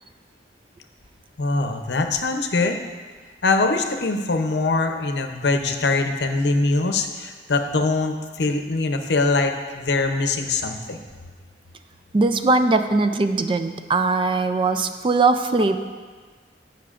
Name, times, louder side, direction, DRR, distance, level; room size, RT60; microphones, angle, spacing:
voice 1, 1.4-2.8 3.4-11.0, left 3 dB, 70° left, 5 dB, 0.7 m, -22 dB
voice 2, 12.1-15.8, right 3 dB, 30° right, 8 dB, 0.3 m, -20 dB
16.5 x 5.8 x 2.5 m, 1.5 s
head